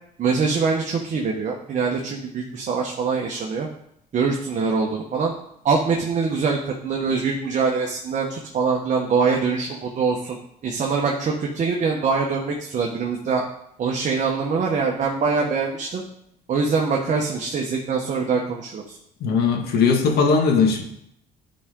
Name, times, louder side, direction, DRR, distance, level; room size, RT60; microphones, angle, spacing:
voice 1, 0.2-3.7 4.1-5.3 5.6-10.4 10.6-13.4 13.8-16.0 16.5-19.0, right 5 dB, 45° right, 0 dB, 1.2 m, -23 dB
voice 2, 19.2-20.8, left 5 dB, 70° left, 2 dB, 1.8 m, -19 dB
11.0 x 5.0 x 3.8 m, 0.73 s
cardioid pair, 110°, 17 cm